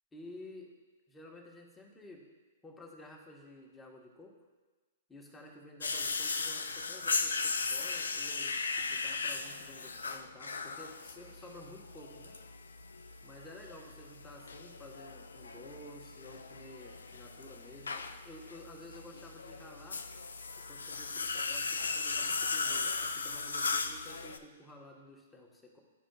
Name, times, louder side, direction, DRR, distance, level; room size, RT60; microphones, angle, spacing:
voice 1, 0.1-0.7 1.1-2.2 2.6-4.3 5.1-12.3 13.2-20.0 20.7-25.8, left 1 dB, 10° left, -1 dB, 1.2 m, -52 dB
sound 1, 5.8-24.4, left 4 dB, 85° left, 0.4 m, -37 dB
11.5 x 5.0 x 2.3 m, 1.3 s
hypercardioid pair, 120°, 0 cm